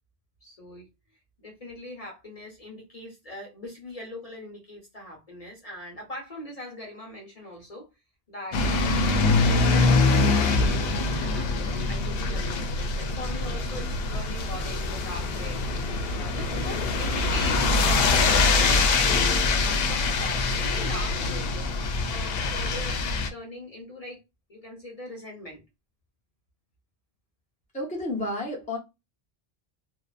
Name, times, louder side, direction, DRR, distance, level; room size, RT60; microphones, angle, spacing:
voice 1, 0.4-0.9 1.4-7.9 8.3-15.6 16.1-21.7 22.1-24.2 24.5-25.6, left 1 dB, 40° left, 0.9 m, -41 dB
sound 1, 8.5-23.3, left 3 dB, 75° left, 0.8 m, -24 dB
voice 2, 27.7-28.8, left 1 dB, 10° left, 0.8 m, -31 dB
2.7 x 2.1 x 2.3 m
omnidirectional pair, 1.1 m